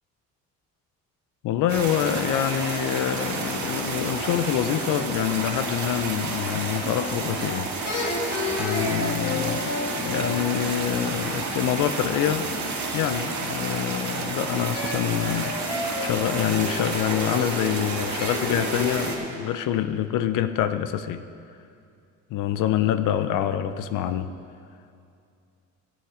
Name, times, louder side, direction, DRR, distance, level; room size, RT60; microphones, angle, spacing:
voice 1, 1.4-7.7 8.6-21.2 22.3-24.3, left 10 dB, 85° left, 11 dB, 0.6 m, -26 dB
sound 1, 1.7-19.2, right 3 dB, 65° right, 1.9 m, -30 dB
sound 2, 7.8-11.5 14.7-19.2, left 3 dB, 55° left, 1.8 m, -32 dB
14.5 x 8.8 x 3.8 m, 2.5 s
cardioid pair, 110°, 31 cm